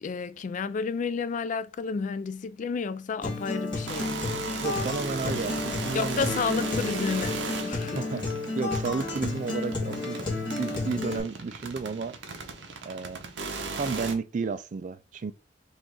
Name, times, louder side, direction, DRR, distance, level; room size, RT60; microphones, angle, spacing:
voice 1, 0.0-4.2 5.3-5.4 5.9-8.1, left 5 dB, 45° left, 0.3 m, -31 dB
Acoustic guitar, 3.2-11.2, left 2 dB, 25° left, 2.1 m, -32 dB
sound 1, 3.8-14.1, right 4 dB, 80° right, 0.8 m, -37 dB
voice 2, 4.6-6.4 8.0-8.3 8.6-12.2 12.8-13.3 13.8-15.3, right 4 dB, 45° right, 0.3 m, -32 dB
4.8 x 2.5 x 3.8 m
head